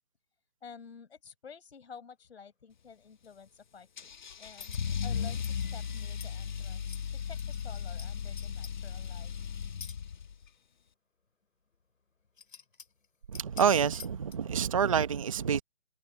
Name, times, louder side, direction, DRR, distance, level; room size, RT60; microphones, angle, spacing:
voice 1, 0.6-9.3, left 6 dB, 55° left, 5.3 m, -51 dB
Car / Engine starting / Accelerating revving vroom, 4.0-10.5, left 7 dB, 40° left, 1.3 m, -36 dB
sound 1, 4.5-4.9 5.4-5.7 6.2-6.3 6.8-7.0 7.4-8.1 8.3-8.7 9.8-10.0 10.4-10.5 11.7-11.8 12.2-13.1 13.3-14.4, left 6 dB, 90° left, 3.1 m, -47 dB
voice 2, 13.3-15.6, right 7 dB, 25° right, 1.0 m, -27 dB
hypercardioid pair, 170°, 38 cm